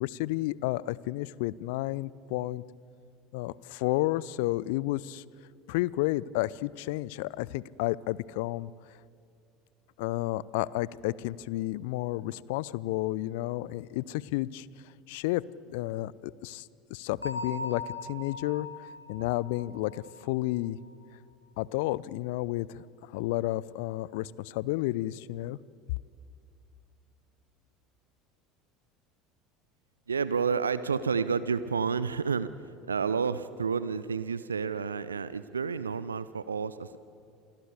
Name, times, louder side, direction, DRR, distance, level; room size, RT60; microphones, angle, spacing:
voice 1, 0.0-2.6 3.3-5.2 5.7-8.7 10.0-14.7 15.1-15.4 15.7-18.7 19.1-20.8 21.6-22.8 23.1-25.6, left 17 dB, 60° left, 22 dB, 0.6 m, -31 dB
Bell, 17.2-20.9, left 2 dB, 90° left, 1.7 m, -40 dB
voice 2, 30.1-37.0, right 5 dB, 80° right, 15 dB, 0.7 m, -30 dB
27.5 x 21.0 x 8.2 m, 2.3 s
figure-of-eight pair, 70°, 0 cm